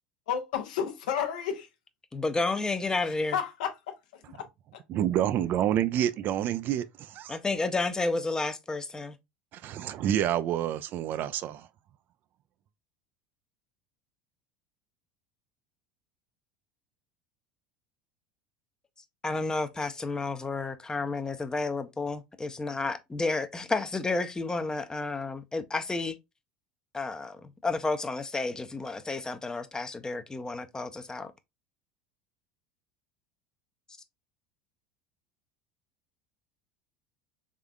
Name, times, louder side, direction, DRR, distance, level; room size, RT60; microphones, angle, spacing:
voice 1, 0.3-1.7 3.3-3.9 4.3-4.5, left 8 dB, 75° left, 0.8 m, -31 dB
voice 2, 2.1-3.4 7.3-9.2 19.2-26.2 26.9-31.3, left 3 dB, 15° left, 0.6 m, -31 dB
voice 3, 4.9-7.4 9.5-11.7, right 11 dB, 45° right, 0.3 m, -28 dB
3.6 x 3.4 x 2.3 m
hypercardioid pair, 80°, 5 cm